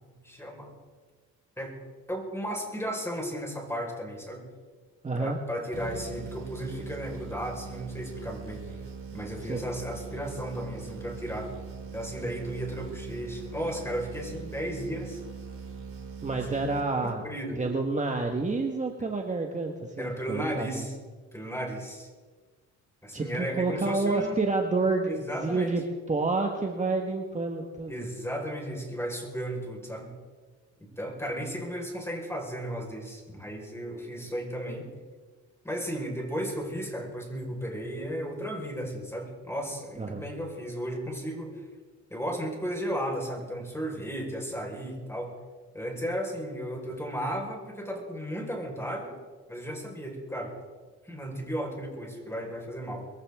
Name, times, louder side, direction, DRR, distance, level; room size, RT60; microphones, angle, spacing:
voice 1, 0.2-0.7 1.6-1.8 2.1-4.4 5.2-8.8 9.1-11.6 11.9-15.2 16.3-16.7 17.0-17.6 20.0-20.9 21.3-22.1 23.0-24.4 25.1-25.7 27.9-30.1 30.8-34.9 35.6-41.6 42.1-45.3 45.7-49.2 49.5-50.5 51.0-53.1, equal, 10° left, 1 dB, 4.9 m, -34 dB
voice 2, 5.0-5.4 9.5-9.6 16.2-17.2 17.6-20.8 23.1-28.1 40.0-40.3, right 3 dB, 25° right, 2 dB, 1.6 m, -29 dB
sound 1, 5.7-17.4, right 6 dB, 45° right, 3.9 m, -42 dB
22.0 x 15.5 x 3.7 m, 1.4 s
cardioid pair, 90°, 30 cm